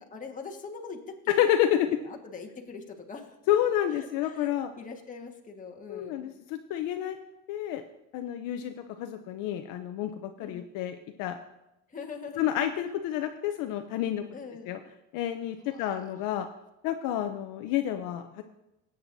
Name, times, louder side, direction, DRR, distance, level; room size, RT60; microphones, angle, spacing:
voice 1, 0.1-1.4 1.9-3.4 3.9-6.3 10.4-10.7 11.9-12.5 14.3-14.8 15.7-16.0, left 5 dB, 20° left, 1 dB, 1.6 m, -43 dB
voice 2, 1.3-2.0 3.5-4.7 5.9-7.2 7.5-7.8 8.1-11.4 12.4-14.2 14.7-14.8 15.1-16.5 16.8-18.4, left 11 dB, 60° left, 7 dB, 0.7 m, -29 dB
17.0 x 8.8 x 2.7 m, 0.91 s
supercardioid pair, 120°, 36 cm